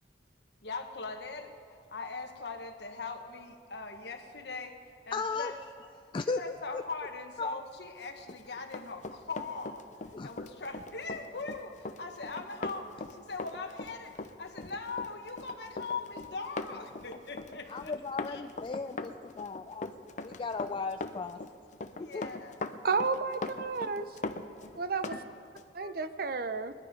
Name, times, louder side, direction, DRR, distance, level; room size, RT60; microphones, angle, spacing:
voice 1, 0.6-4.8 5.1-5.5 6.3-9.8 10.2-14.1 14.4-17.9 18.3-18.4 22.0-22.5 25.8-25.9, left 4 dB, 70° left, 5 dB, 1.4 m, -41 dB
voice 2, 5.1-5.5 6.1-6.8 7.4-7.6 10.1-10.3 17.7-19.9 20.2-21.4 22.0-22.3, left 4 dB, 30° left, 7 dB, 0.3 m, -36 dB
Run, 8.2-25.2 25.6-25.7, left 3 dB, 45° left, 0.7 m, -40 dB
voice 3, 22.8-24.1 24.7-25.1 25.7-26.7, right 4 dB, 60° right, 11 dB, 0.7 m, -31 dB
21.5 x 11.0 x 5.3 m, 2.5 s
head